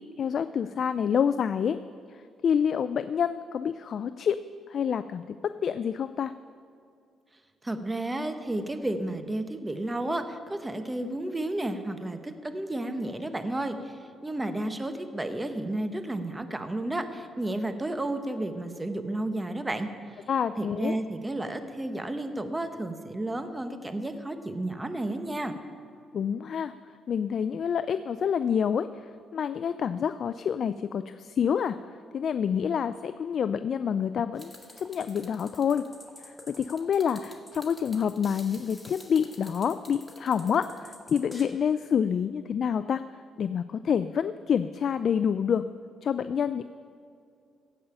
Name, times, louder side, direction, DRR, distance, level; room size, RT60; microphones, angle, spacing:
voice 1, 0.0-1.8 2.4-4.4 4.7-6.3 20.3-21.0 26.1-26.7 27.1-28.9 29.3-31.8 32.1-35.8 36.2-43.0 43.4-45.7 46.0-46.6, left 7 dB, 55° left, 12 dB, 0.3 m, -27 dB
voice 2, 7.6-19.9 20.6-25.5, right 1 dB, 15° right, 8 dB, 1.0 m, -32 dB
sound 1, 34.4-41.4, left 1 dB, 15° left, 2.0 m, -48 dB
15.5 x 5.5 x 8.7 m, 2.4 s
cardioid pair, 90°, 0 cm